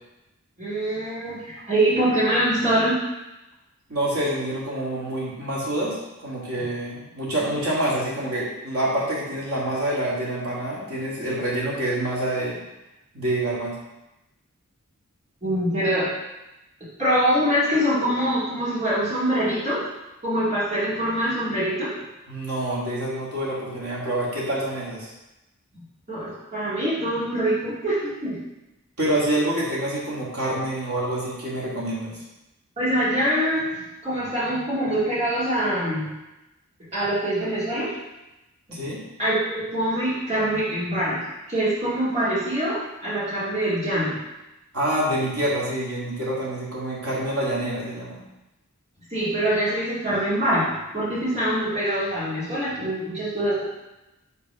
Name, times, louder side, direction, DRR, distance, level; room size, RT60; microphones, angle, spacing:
voice 1, 0.6-3.0 15.4-16.1 17.0-19.8 20.2-21.9 26.1-28.4 32.8-36.1 36.9-37.9 38.7-38.8 39.2-41.2 41.5-44.1 49.1-53.6, right 1 dB, 30° right, -12 dB, 2.0 m, -24 dB
voice 2, 3.9-12.6 13.1-13.8 22.3-25.1 29.0-32.2 38.7-39.0 44.7-48.2, right 1 dB, 90° right, -6 dB, 2.0 m, -27 dB
5.3 x 3.5 x 5.4 m, 0.98 s
head